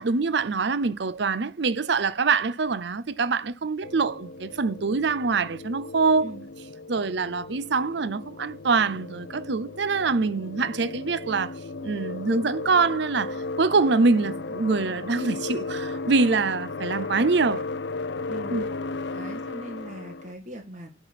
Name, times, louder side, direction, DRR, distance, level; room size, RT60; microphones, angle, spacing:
voice 1, 0.0-6.3 6.9-17.7 18.5-18.6, right 4 dB, 60° right, 0.6 m, -24 dB
sound 1, 3.8-20.3, left 3 dB, 65° left, 0.6 m, -35 dB
voice 2, 18.3-18.7 19.1-20.9, right 1 dB, 40° right, 2.0 m, -40 dB
11.0 x 4.4 x 5.9 m
head